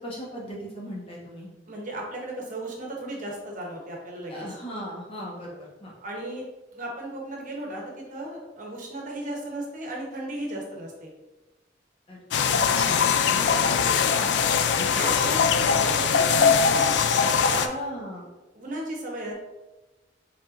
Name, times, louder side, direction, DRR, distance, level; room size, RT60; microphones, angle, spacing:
voice 1, 0.0-1.5 4.3-5.9 12.1-12.2 12.5-13.4 14.2-14.4 17.7-18.3, equal, 30° left, -4 dB, 1.2 m, -38 dB
voice 2, 1.7-4.4 6.0-6.4 6.7-11.1 13.4-13.6 14.8-17.8 18.5-19.3, right 1 dB, 45° right, -1 dB, 1.0 m, -35 dB
sound 1, 12.3-17.7, left 6 dB, 65° left, 0.3 m, -21 dB
5.3 x 3.5 x 2.6 m, 1.1 s
head